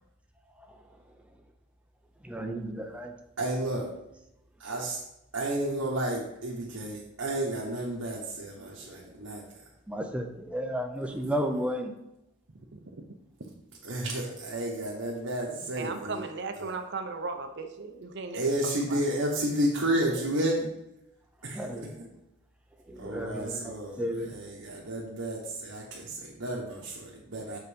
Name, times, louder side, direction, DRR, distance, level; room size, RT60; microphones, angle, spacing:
voice 1, 0.5-1.2 2.2-3.2 8.8-9.3 9.9-11.9 21.4-22.0 22.8-24.4, equal, 5° right, 4 dB, 0.6 m, -34 dB
voice 2, 3.4-3.8 4.6-5.0 5.3-9.4 13.8-16.2 16.6-16.7 18.3-20.7 21.4-21.6 23.0-24.0 24.3-27.6, right 1 dB, 70° right, -4 dB, 1.2 m, -31 dB
voice 3, 12.5-13.1 13.4-13.5 15.7-19.0, right 4 dB, 55° right, 7 dB, 0.7 m, -37 dB
6.7 x 4.0 x 5.2 m, 0.87 s
head